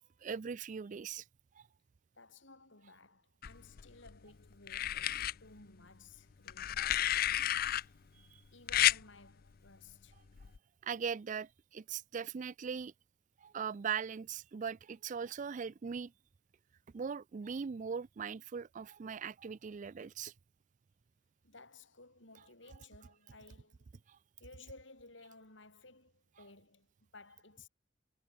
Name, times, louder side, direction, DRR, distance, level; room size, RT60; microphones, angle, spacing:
voice 1, 0.2-1.2 1.6-1.7 6.8-6.9 7.6-7.8 8.3-8.4 10.8-12.9 13.4-16.1 16.9-20.3 24.1-24.2, right 6 dB, 40° right, 0.4 m, -40 dB
voice 2, 2.1-7.1 8.5-10.2 21.4-23.9 24.4-27.7, left 3 dB, 65° left, 6.3 m, -57 dB
sound 1, 3.4-4.1 4.7-5.3 6.5-7.8 8.7-9.0 10.4-10.6, left 12 dB, 50° left, 0.5 m, -31 dB
head